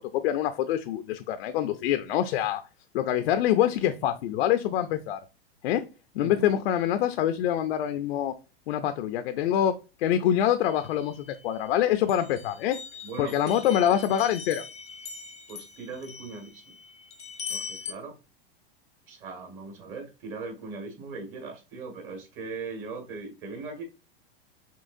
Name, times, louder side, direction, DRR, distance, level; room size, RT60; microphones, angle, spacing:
voice 1, 0.0-2.6 2.9-5.2 5.6-5.8 6.1-8.3 8.7-9.7 10.0-12.8 13.2-14.6, left 11 dB, 75° left, 9 dB, 0.5 m, -25 dB
voice 2, 6.2-6.5 13.0-13.9 15.5-16.6 17.5-18.1 19.1-23.8, right 4 dB, 40° right, 3 dB, 1.7 m, -39 dB
sound 1, 10.6-11.7 12.1-17.9, left 6 dB, 20° left, 0.5 m, -41 dB
5.5 x 2.9 x 2.6 m, 0.29 s
supercardioid pair, 140°, 31 cm